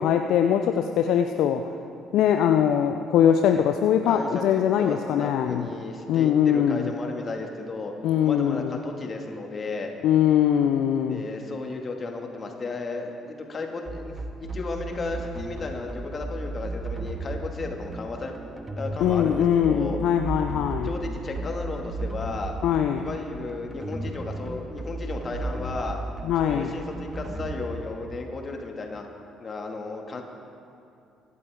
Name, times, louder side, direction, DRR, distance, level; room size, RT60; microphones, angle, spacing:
voice 1, 0.0-1.6 2.1-5.7 6.1-6.9 8.0-8.8 10.0-11.2 19.0-20.9 22.6-23.1 26.2-26.7, left 9 dB, 65° left, 6 dB, 0.6 m, -22 dB
voice 2, 4.1-7.9 8.2-9.9 11.1-14.1 14.4-18.3 18.8-20.0 20.8-22.6 23.0-26.0 26.4-29.0 29.4-30.2, left 3 dB, 40° left, 2 dB, 2.4 m, -34 dB
sound 1, 13.9-27.6, right 2 dB, 25° right, 2.0 m, -34 dB
24.5 x 12.0 x 3.8 m, 2.5 s
figure-of-eight pair, 50°, 0 cm